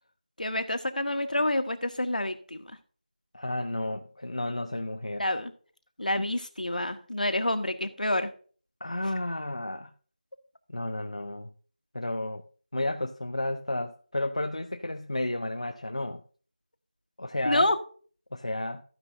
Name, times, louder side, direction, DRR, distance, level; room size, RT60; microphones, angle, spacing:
voice 1, 0.4-2.7 5.2-5.5 6.0-8.3 17.4-17.7, left 1 dB, 65° left, 1.8 m, -28 dB
voice 2, 3.3-5.2 8.8-9.9 10.7-11.5 11.9-12.4 12.7-16.2 17.2-17.7 18.3-18.8, left 1 dB, 45° left, 0.8 m, -32 dB
14.0 x 10.0 x 2.7 m
figure-of-eight pair, 180°, 5 cm